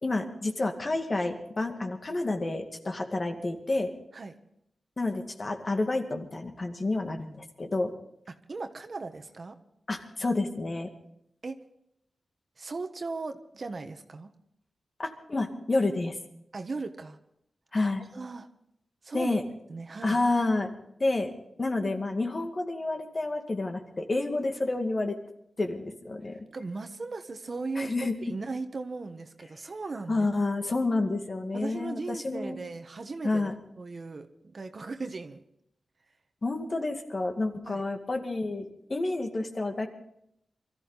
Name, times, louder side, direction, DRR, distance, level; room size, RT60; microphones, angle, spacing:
voice 1, 0.0-3.9 5.0-7.9 9.9-10.9 15.0-16.2 17.7-18.0 19.1-19.4 20.0-20.7 21.0-21.3 21.6-25.2 25.6-26.4 27.8-28.2 30.1-32.6 33.2-33.5 36.4-38.6 38.9-39.9, left 2 dB, 45° left, 4 dB, 2.2 m, -29 dB
voice 2, 8.3-9.6 11.4-11.6 12.6-14.3 16.5-17.2 18.1-18.5 19.0-19.4 19.7-20.2 26.5-27.9 28.3-30.3 31.5-35.4 37.6-37.8, right 3 dB, 55° right, 7 dB, 1.4 m, -37 dB
23.0 x 14.0 x 4.1 m, 0.76 s
cardioid pair, 60°, 0 cm